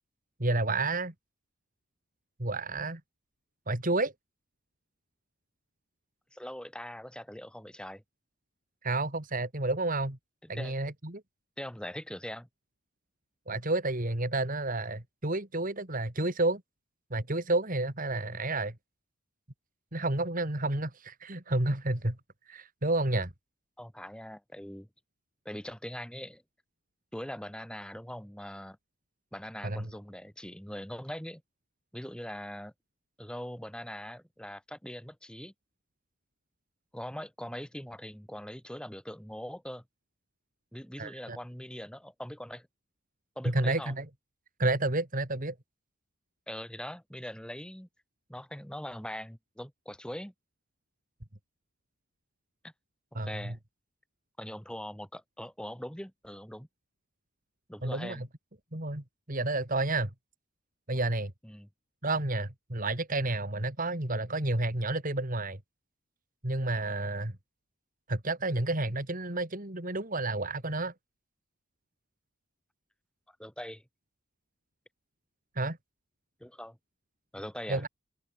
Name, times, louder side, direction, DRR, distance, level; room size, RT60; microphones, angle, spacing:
voice 1, 0.4-1.1 2.4-3.0 3.7-4.1 8.8-10.2 10.5-11.2 13.5-16.6 17.1-18.7 19.9-22.2 22.5-23.3 29.6-29.9 41.0-41.4 43.4-44.1 44.6-45.5 53.1-53.5 57.8-58.3 58.7-60.1 60.9-61.3 62.0-65.6 66.4-67.3 68.1-70.9 75.6-75.8 77.7-77.9, right 2 dB, 40° right, 2.7 m, -30 dB
voice 2, 6.3-8.0 10.5-10.8 11.6-12.5 23.8-24.9 25.4-26.4 27.1-28.8 29.3-31.4 31.9-32.7 33.2-35.5 36.9-39.8 40.7-42.7 43.4-43.9 46.5-47.9 48.3-50.3 52.6-52.7 53.1-53.6 54.4-56.7 57.7-58.3 61.4-61.7 73.3-73.8 76.4-76.8 77.3-77.8, equal, 5° left, 2.4 m, -42 dB
open air
head